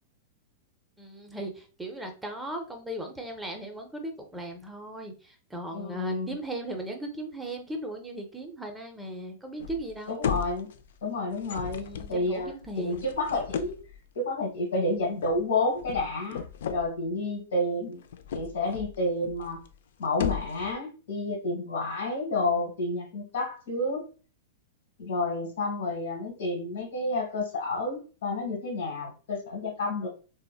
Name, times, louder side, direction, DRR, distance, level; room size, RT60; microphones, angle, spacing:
voice 1, 1.0-10.2 11.7-13.1, right 1 dB, 5° right, 3 dB, 0.5 m, -37 dB
voice 2, 5.7-6.4 10.1-10.7 11.0-13.8 14.1-18.0 18.3-19.6 20.0-24.1 25.0-30.1, left 2 dB, 90° left, -1 dB, 1.3 m, -30 dB
sound 1, 9.6-9.9 10.2-11.0 11.3-14.0 15.2-15.4 15.8-16.9 18.0-18.9 19.2-19.7 20.0-20.7, left 8 dB, 70° left, 0.3 m, -35 dB
3.7 x 2.0 x 2.2 m, 0.37 s
supercardioid pair, 160°, 0 cm